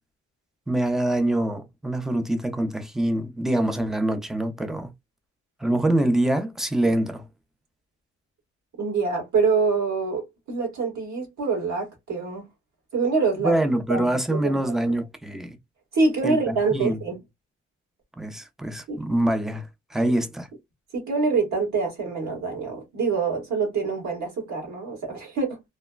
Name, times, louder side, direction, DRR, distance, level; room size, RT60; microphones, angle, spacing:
voice 1, 0.7-4.9 5.6-7.3 13.4-15.6 16.2-17.0 18.2-20.5, right 1 dB, ahead, 0.5 m, -25 dB
voice 2, 8.8-12.5 12.9-13.5 13.9-14.7 15.9-17.2 18.9-19.0 20.9-25.6, right 4 dB, 65° right, 1.6 m, -25 dB
3.1 x 2.1 x 2.3 m
cardioid pair, 90°, 30 cm